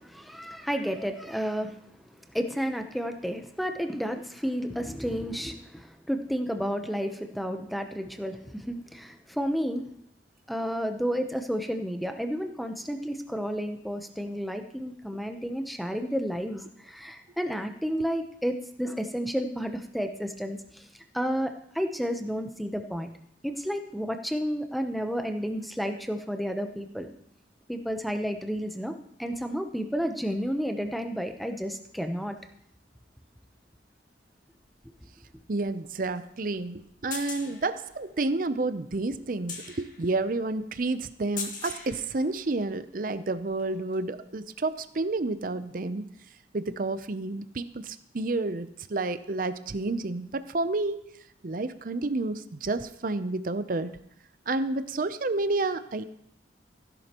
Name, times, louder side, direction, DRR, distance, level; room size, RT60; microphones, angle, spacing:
voice 1, 0.0-1.8 2.3-9.8 10.5-20.9 21.1-23.1 23.4-27.1 27.7-32.3 34.8-34.9, equal, ahead, 6 dB, 0.7 m, -31 dB
sound 1, 34.6-42.9 43.4-44.2 45.5-45.6, left 5 dB, 45° left, 2.0 m, -43 dB
voice 2, 35.5-46.1 46.5-51.0 51.4-53.9 54.5-56.0, right 2 dB, 50° right, 12 dB, 0.6 m, -30 dB
16.0 x 11.0 x 3.0 m, 0.75 s
head